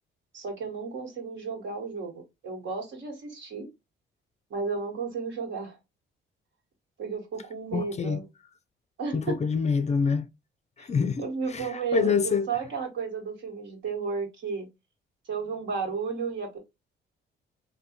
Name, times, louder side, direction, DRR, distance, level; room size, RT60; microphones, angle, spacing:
voice 1, 0.3-2.1 2.4-3.7 4.5-5.8 7.0-8.2 9.0-9.4 10.8-10.9 11.2-14.7 15.3-16.6, right 5 dB, 70° right, 1.4 m, -33 dB
voice 2, 7.7-8.2 9.1-10.3 10.8-12.5, left 6 dB, 35° left, 0.4 m, -26 dB
3.4 x 2.2 x 2.8 m
cardioid pair, 90°, 20 cm